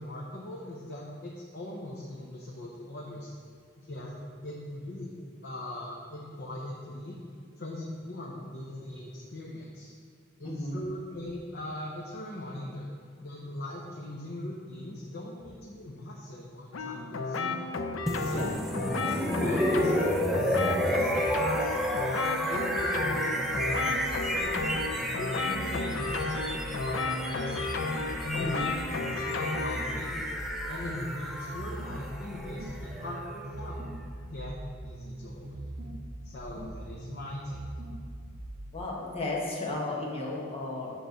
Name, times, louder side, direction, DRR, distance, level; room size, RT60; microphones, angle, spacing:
voice 1, 0.0-3.3 3.8-4.2 4.4-5.1 5.4-7.2 7.6-9.9 10.4-12.9 13.2-17.7 18.2-18.4 19.0-20.0 20.4-21.8 22.2-24.8 25.2-27.7 28.2-28.7 29.1-30.3 30.7-33.8 34.3-34.6 34.8-35.7 36.2-37.6, left 1 dB, 55° left, -3 dB, 0.8 m, -40 dB
voice 2, 10.4-10.8 18.2-18.6 28.3-28.7 38.7-40.9, left 2 dB, 30° left, -3 dB, 1.2 m, -34 dB
sound 1, 16.7-29.9, left 3 dB, 90° left, 0.5 m, -33 dB
sound 2, 18.1-33.9, equal, ahead, 0.5 m, -31 dB
sound 3, 22.8-38.8, right 1 dB, 60° right, 0.9 m, -41 dB
7.8 x 3.3 x 6.4 m, 2.3 s
head